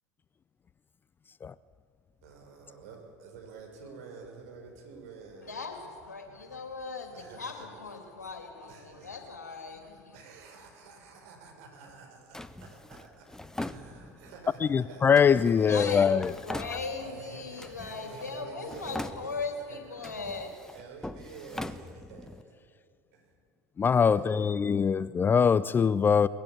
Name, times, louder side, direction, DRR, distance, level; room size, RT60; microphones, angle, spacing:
voice 1, 2.2-5.5 7.1-7.7 8.7-9.2 10.1-13.3 13.6-15.9 16.5-19.4 19.6-19.8 20.7-22.6 23.1-23.3 24.1-25.0, right 5 dB, 65° right, 5.9 m, -48 dB
voice 2, 5.4-10.2 15.5-20.5, left 4 dB, 85° left, 2.9 m, -39 dB
Drawer open or close, 12.3-14.4 15.1-17.2 17.6-18.4 18.6-19.6 20.0-22.4, left 1 dB, 5° left, 0.9 m, -42 dB
voice 3, 14.6-16.3 23.8-26.3, left 6 dB, 25° left, 0.4 m, -23 dB
21.0 x 15.5 x 9.5 m
figure-of-eight pair, 75°, 9 cm